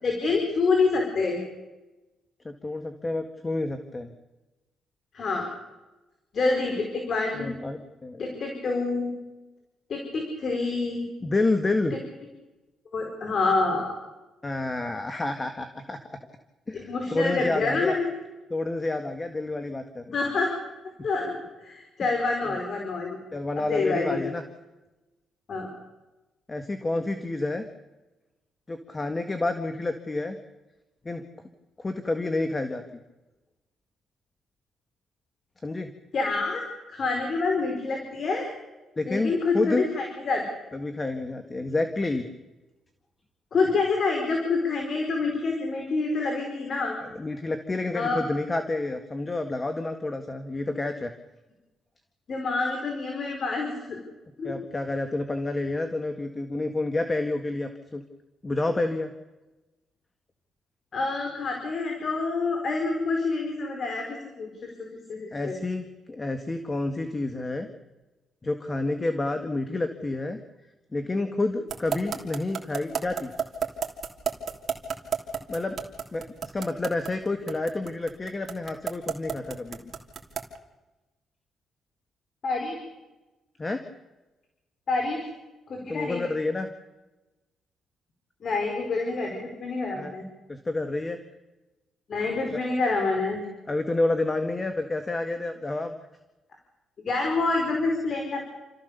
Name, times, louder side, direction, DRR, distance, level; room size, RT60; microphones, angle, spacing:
voice 1, 0.0-1.4 5.1-5.5 6.3-7.5 8.2-9.1 9.9-11.1 11.9-12.0 12.9-13.9 16.7-18.1 20.1-20.5 21.0-23.2 23.6-24.2 25.5-25.7 36.1-36.6 36.9-38.5 39.0-40.4 43.5-47.0 47.9-48.2 52.3-54.0 54.4-54.6 60.9-65.6 82.4-82.8 84.9-85.3 85.7-86.2 88.4-90.2 92.1-93.4 97.0-98.4, left 3 dB, 50° left, 2 dB, 4.7 m, -27 dB
voice 2, 2.5-4.1 7.3-8.3 11.2-11.9 14.4-16.2 16.7-18.0 18.5-20.1 23.3-24.4 26.5-27.6 28.7-30.4 31.1-31.2 31.8-33.0 35.6-35.9 39.0-39.8 40.7-42.3 47.2-51.1 54.4-58.0 58.4-59.1 65.3-67.7 68.4-70.4 70.9-73.3 75.5-75.8 76.1-79.9 83.6-83.8 85.9-86.7 89.9-90.1 90.5-91.2 92.5-92.6 93.7-95.9, left 2 dB, 25° left, 7 dB, 1.8 m, -29 dB
sound 1, 71.7-80.6, right 7 dB, 45° right, 3.2 m, -30 dB
29.0 x 14.5 x 7.0 m, 1.1 s
cardioid pair, 90°, 0 cm